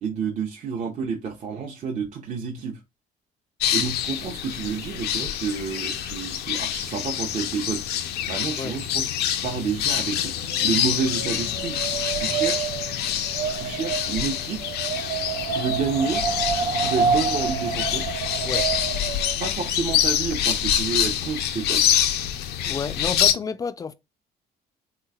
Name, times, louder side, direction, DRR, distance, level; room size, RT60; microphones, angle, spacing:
voice 1, 0.0-2.8 3.7-7.8 8.3-9.1 9.4-10.3 10.6-11.8 12.2-12.7 13.5-14.7 15.5-16.2 16.8-18.1 19.4-21.8, right 5 dB, 45° right, 0.8 m, -29 dB
sound 1, 3.6-23.3, left 10 dB, 75° left, 0.5 m, -26 dB
Wind, 10.2-19.5, right 6 dB, 90° right, 0.5 m, -28 dB
voice 2, 22.6-23.9, left 5 dB, 20° left, 0.4 m, -30 dB
3.2 x 3.0 x 2.3 m
cardioid pair, 110°, 17 cm